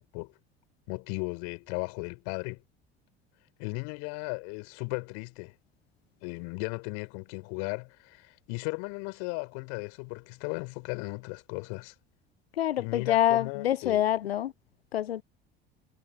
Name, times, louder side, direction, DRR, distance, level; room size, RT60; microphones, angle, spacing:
voice 1, 0.9-2.6 3.6-5.5 6.2-11.9 12.8-14.0, left 35 dB, 65° left, 4.4 m, -36 dB
voice 2, 12.6-14.5 14.9-15.2, left 12 dB, 90° left, 0.5 m, -26 dB
hypercardioid pair, 65°, 30 cm